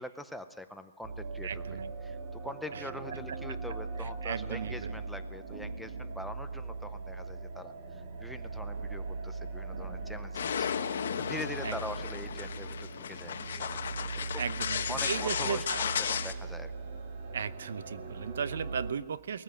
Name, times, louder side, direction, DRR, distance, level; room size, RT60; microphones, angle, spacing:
voice 1, 0.0-14.5 14.9-16.7, left 1 dB, ahead, 7 dB, 0.6 m, -44 dB
sound 1, 1.0-18.9, right 3 dB, 40° right, 2.4 m, -40 dB
voice 2, 1.4-2.2 2.7-3.2 4.0-5.0 11.6-11.8 14.4-15.8 17.3-19.4, right 7 dB, 65° right, 16 dB, 0.9 m, -36 dB
sound 2, 10.3-16.3, left 7 dB, 60° left, 1.3 m, -34 dB
20.0 x 14.5 x 9.1 m, 1.2 s
hypercardioid pair, 170°, 0 cm